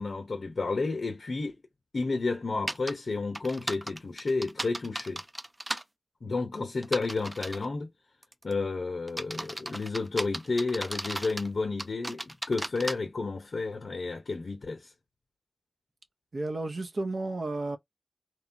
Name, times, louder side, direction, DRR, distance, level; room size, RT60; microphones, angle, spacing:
voice 1, 0.0-1.6 1.9-5.2 6.2-7.9 8.4-14.9, left 3 dB, 65° left, 0.6 m, -31 dB
sound 1, 2.7-2.9 3.3-5.8 6.8-7.7 8.2-8.5 9.1-11.5 11.8-12.9, right 1 dB, 20° right, 0.4 m, -35 dB
voice 2, 16.3-17.8, right 2 dB, 60° right, 0.6 m, -32 dB
3.0 x 2.2 x 2.5 m
cardioid pair, 45°, 0 cm